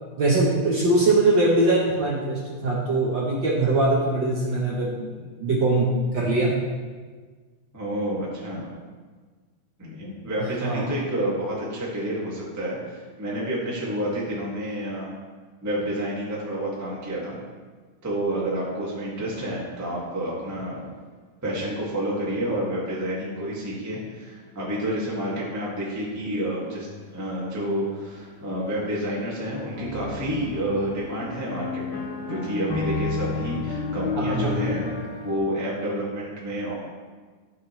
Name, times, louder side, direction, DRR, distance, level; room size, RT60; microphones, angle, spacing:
voice 1, 0.2-5.1 5.4-6.6 10.4-10.9 34.2-34.5, right 2 dB, 70° right, -4 dB, 1.1 m, -22 dB
voice 2, 7.7-8.7 9.8-15.1 15.6-17.4 18.0-20.9 21.4-26.9 27.1-34.8 35.2-36.7, right 1 dB, 10° right, -6 dB, 1.2 m, -29 dB
sound 1, 21.0-21.1 23.6-35.4, left 3 dB, 80° left, 2.8 m, -34 dB
12.5 x 6.4 x 3.2 m, 1.4 s
omnidirectional pair, 3.7 m